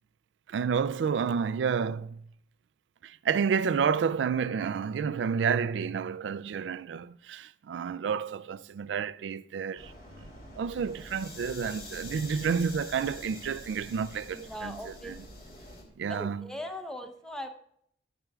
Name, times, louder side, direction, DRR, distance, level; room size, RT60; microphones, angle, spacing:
voice 1, 0.5-2.2 3.0-9.9 10.2-10.3 10.6-14.8 15.0-15.2 16.0-16.5, right 6 dB, 85° right, 0.3 m, -30 dB
sound 1, 9.8-15.8, left 2 dB, 55° left, 2.3 m, -46 dB
voice 2, 14.3-15.5 16.1-17.5, left 1 dB, 5° left, 0.7 m, -40 dB
12.0 x 10.5 x 2.3 m
head